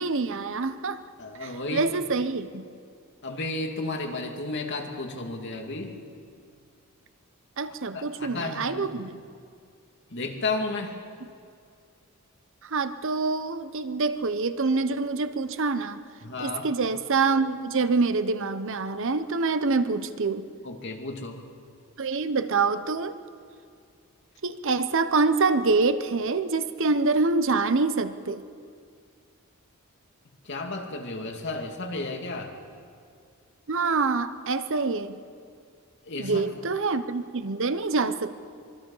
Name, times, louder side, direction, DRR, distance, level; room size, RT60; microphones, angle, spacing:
voice 1, 0.0-1.0 1.4-2.6 7.6-9.2 12.6-16.0 16.4-20.5 22.0-23.2 24.4-28.4 33.7-35.2 36.2-38.4, right 4 dB, 60° right, 11 dB, 0.9 m, -26 dB
voice 2, 1.2-2.0 3.2-6.0 7.9-9.0 10.1-10.9 16.2-16.7 20.6-21.4 30.4-32.6 36.0-36.4, left 2 dB, 55° left, 2 dB, 2.6 m, -33 dB
25.0 x 23.5 x 5.6 m, 2.3 s
head